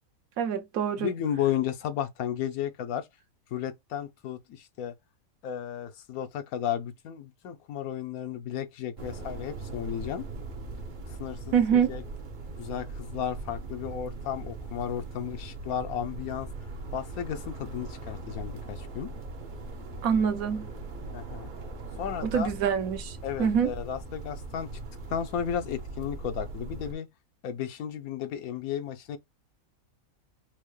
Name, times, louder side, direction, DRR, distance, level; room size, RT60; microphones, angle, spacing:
voice 1, 0.4-1.1 11.5-11.9 20.0-20.7 22.2-23.7, right 7 dB, 75° right, 1.2 m, -25 dB
voice 2, 1.0-3.1 3.5-4.9 5.4-10.3 11.1-11.6 11.9-12.0 12.6-16.5 16.9-19.1 21.1-21.5 22.0-22.5 23.2-24.7 25.1-27.1 27.4-29.2, left 9 dB, 80° left, 1.1 m, -33 dB
sound 1, 9.0-26.9, right 3 dB, 45° right, 0.7 m, -40 dB
4.5 x 2.1 x 3.1 m
omnidirectional pair, 1.5 m